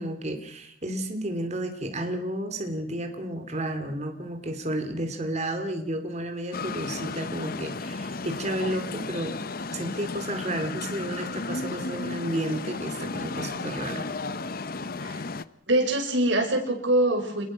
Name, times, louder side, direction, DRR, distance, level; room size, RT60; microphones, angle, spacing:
voice 1, 0.0-9.4 9.7-14.1, right 1 dB, 35° right, 6 dB, 2.7 m, -32 dB
sound 1, 6.5-15.4, left 3 dB, 50° left, 0.8 m, -34 dB
voice 2, 15.7-17.4, right 1 dB, 65° right, 4 dB, 6.2 m, -24 dB
27.0 x 21.0 x 6.3 m, 0.67 s
head